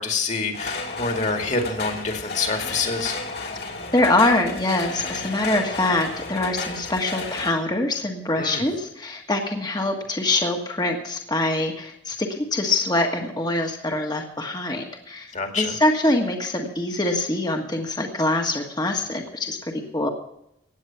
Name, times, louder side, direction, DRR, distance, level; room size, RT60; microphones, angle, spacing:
voice 1, 0.0-3.2 8.4-8.7 15.3-15.7, left 4 dB, 40° left, 4 dB, 2.2 m, -26 dB
sound 1, 0.5-7.5, left 3 dB, 55° left, 2.7 m, -33 dB
voice 2, 3.9-20.1, left 2 dB, 20° left, 2 dB, 1.5 m, -24 dB
16.5 x 9.6 x 5.8 m, 0.78 s
head